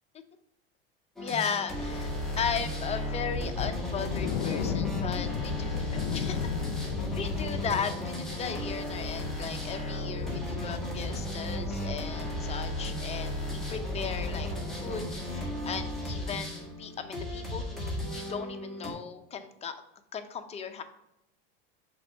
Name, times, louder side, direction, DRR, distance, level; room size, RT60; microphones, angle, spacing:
voice 1, 1.2-2.1 2.4-6.5 7.1-14.5 14.8-19.8 20.1-20.8, left 7 dB, 20° left, 8 dB, 0.6 m, -36 dB
sound 1, 1.2-18.9, left 1 dB, ahead, 1.7 m, -34 dB
sound 2, 3.6-11.3 11.6-11.8 12.2-12.3, left 10 dB, 90° left, 0.5 m, -36 dB
5.9 x 3.7 x 5.2 m, 0.83 s
supercardioid pair, 125°, 30 cm